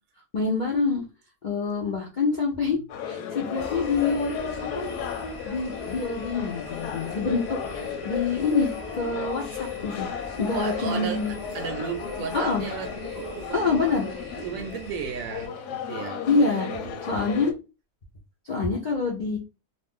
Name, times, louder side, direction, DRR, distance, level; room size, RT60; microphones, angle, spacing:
voice 1, 0.3-1.0 1.4-2.8 3.1-4.4 4.7-4.9 5.4-10.1 10.4-11.3 12.3-12.6 13.5-14.1 16.3-16.7 17.1-17.5 18.4-19.4, left 4 dB, 55° left, 0.5 m, -26 dB
sound 1, 2.9-17.5, left 7 dB, 90° left, 1.2 m, -34 dB
sound 2, 3.5-15.5, equal, 25° left, 0.9 m, -45 dB
voice 2, 10.5-11.3 11.5-17.5, right 6 dB, 70° right, 0.9 m, -35 dB
2.4 x 2.4 x 3.5 m
omnidirectional pair, 1.7 m